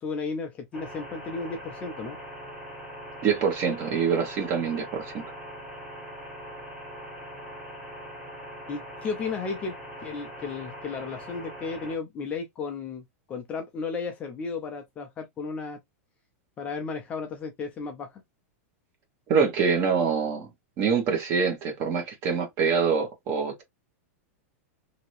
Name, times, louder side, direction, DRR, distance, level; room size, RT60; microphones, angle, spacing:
voice 1, 0.0-2.2 8.7-15.8 16.6-18.2, left 4 dB, 15° left, 0.4 m, -34 dB
sound 1, 0.7-12.0, equal, 5° right, 1.0 m, -41 dB
voice 2, 3.2-5.2 19.3-20.5 20.8-23.6, right 6 dB, 30° right, 1.1 m, -25 dB
2.8 x 2.7 x 3.0 m
supercardioid pair, 170°, 8 cm